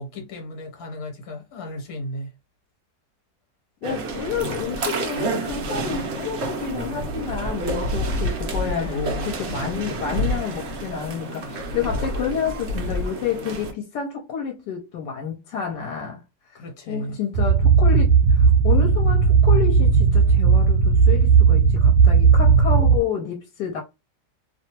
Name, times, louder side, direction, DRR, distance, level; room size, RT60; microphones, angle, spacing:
voice 1, 0.0-2.3 8.6-9.3 16.5-17.2, left 1 dB, 60° left, 1.4 m, -34 dB
voice 2, 3.8-16.6 16.9-23.8, left 7 dB, 80° left, 1.2 m, -30 dB
sound 1, 3.8-13.7, right 1 dB, 55° right, 0.8 m, -28 dB
bass rumble metro subway tunnel, 17.3-23.0, right 5 dB, 80° right, 1.2 m, -16 dB
2.9 x 2.2 x 2.9 m
omnidirectional pair, 1.9 m